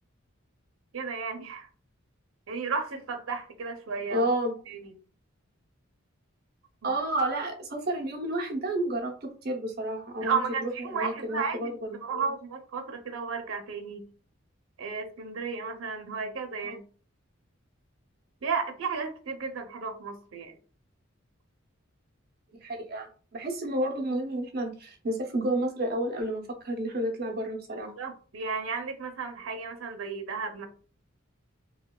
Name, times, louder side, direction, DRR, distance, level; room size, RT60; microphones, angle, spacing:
voice 1, 0.9-1.7 2.5-4.3 4.7-5.0 6.8-6.9 10.2-14.1 14.8-16.8 18.4-20.6 27.7-30.7, right 5 dB, 85° right, 4 dB, 0.6 m, -33 dB
voice 2, 4.1-4.5 6.8-12.2 16.6-16.8 22.6-27.9, right 1 dB, 50° right, 1 dB, 0.7 m, -31 dB
3.1 x 2.1 x 2.2 m, 0.39 s
head